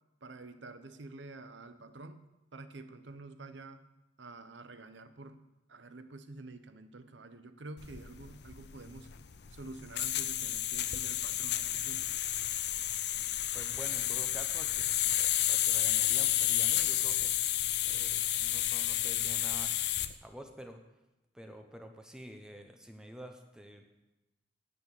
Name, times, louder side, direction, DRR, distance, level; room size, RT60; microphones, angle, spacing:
voice 1, 0.2-2.2 2.5-3.9 4.2-5.4 5.7-9.1 9.5-12.2, right 3 dB, 75° right, 10 dB, 0.9 m, -48 dB
sound 1, 7.8-20.1, left 13 dB, 60° left, 0.6 m, -31 dB
voice 2, 13.5-19.7 20.2-20.8 21.3-23.8, equal, 5° right, 4 dB, 0.9 m, -49 dB
11.0 x 8.5 x 7.2 m, 0.99 s
head